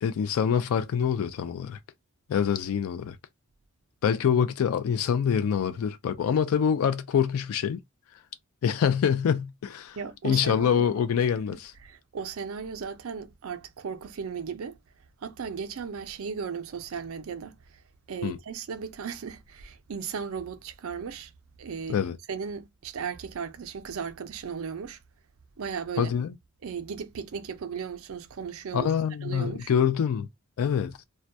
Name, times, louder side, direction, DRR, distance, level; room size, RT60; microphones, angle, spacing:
voice 1, 0.0-1.8 2.3-3.2 4.0-7.8 8.6-10.0 10.2-11.7 18.2-18.4 21.9-22.2 26.0-26.4 28.7-30.3 30.6-31.0, left 7 dB, 75° left, 0.3 m, -25 dB
voice 2, 9.9-14.8 15.2-17.8 18.1-21.3 21.6-22.0 22.3-25.0 25.6-26.2 26.6-28.9 29.2-29.7, right 6 dB, 70° right, 0.4 m, -36 dB
2.2 x 2.1 x 2.6 m
head